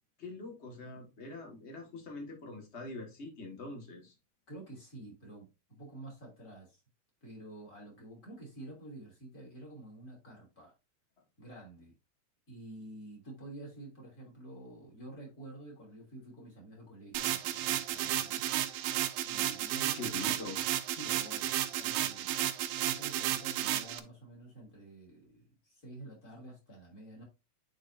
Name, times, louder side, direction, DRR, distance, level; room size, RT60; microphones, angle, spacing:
voice 1, 0.2-4.1 19.9-20.6, left 2 dB, 55° left, 0.7 m, -43 dB
voice 2, 4.5-6.8 7.2-10.7 11.4-11.9 12.5-18.5 19.2-20.4 20.9-22.4 22.8-27.2, right 2 dB, 25° left, 2.8 m, -49 dB
sound 1, 17.1-24.0, right 13 dB, 90° right, 2.4 m, -33 dB
9.3 x 4.7 x 2.6 m
omnidirectional pair, 4.1 m